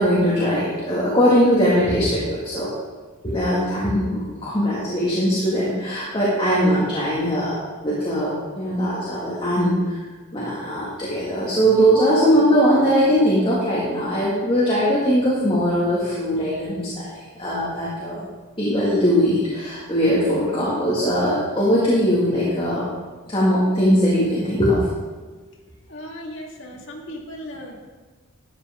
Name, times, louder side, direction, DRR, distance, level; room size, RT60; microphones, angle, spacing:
voice 1, 0.0-2.7 3.2-10.0 10.3-17.1 17.4-18.3 18.6-22.8 23.3-24.9, equal, 25° left, -8 dB, 1.9 m, -20 dB
voice 2, 25.9-27.8, equal, 60° left, -1 dB, 1.9 m, -36 dB
12.5 x 8.3 x 3.7 m, 1.4 s
head